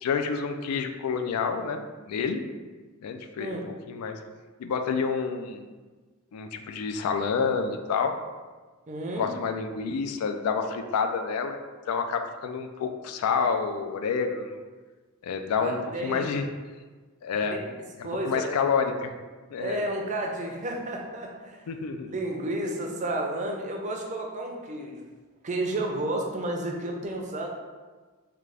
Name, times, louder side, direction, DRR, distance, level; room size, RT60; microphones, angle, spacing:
voice 1, 0.0-2.4 3.0-3.6 3.9-4.2 4.6-5.7 6.3-8.2 9.2-11.6 11.9-14.6 15.2-16.4 17.2-17.6 18.0-19.1 19.5-19.8 21.7-22.1, left 5 dB, 85° left, 6 dB, 0.3 m, -28 dB
voice 2, 8.9-9.3 15.6-16.3 17.5-17.7 18.0-18.6 19.6-21.7 22.1-25.0 25.4-27.5, right 1 dB, 35° right, 1 dB, 0.4 m, -31 dB
3.6 x 2.3 x 3.3 m, 1.4 s
head